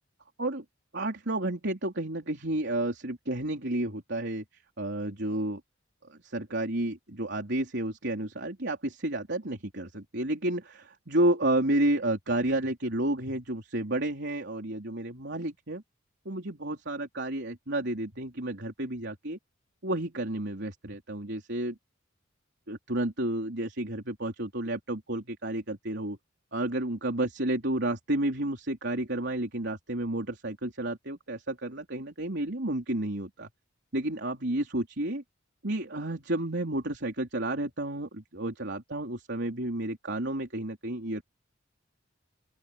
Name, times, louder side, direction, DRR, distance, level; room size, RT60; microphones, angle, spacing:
voice 1, 0.9-4.4 4.8-5.6 6.1-15.8 16.3-19.4 19.8-21.8 22.7-26.2 26.5-33.5 33.9-35.2 35.6-41.2, right 1 dB, 60° right, 4.1 m, -31 dB
open air
head